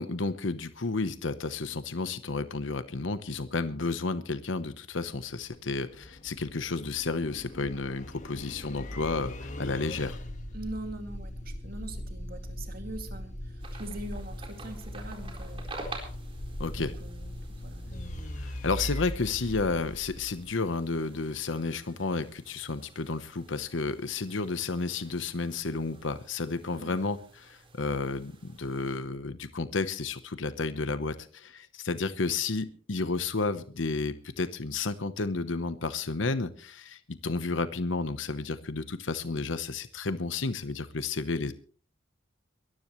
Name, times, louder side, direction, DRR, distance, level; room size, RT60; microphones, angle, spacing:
voice 1, 0.0-10.2 16.6-16.9 18.4-41.5, left 3 dB, 75° left, 12 dB, 1.0 m, -32 dB
sound 1, 4.9-20.9, equal, 40° left, 1.6 m, -40 dB
voice 2, 10.5-15.6 16.8-18.0 26.7-27.0, right 1 dB, 50° right, 6 dB, 2.4 m, -42 dB
sound 2, 13.6-29.0, right 2 dB, 25° right, 4.1 m, -50 dB
22.5 x 14.0 x 3.1 m, 0.41 s
head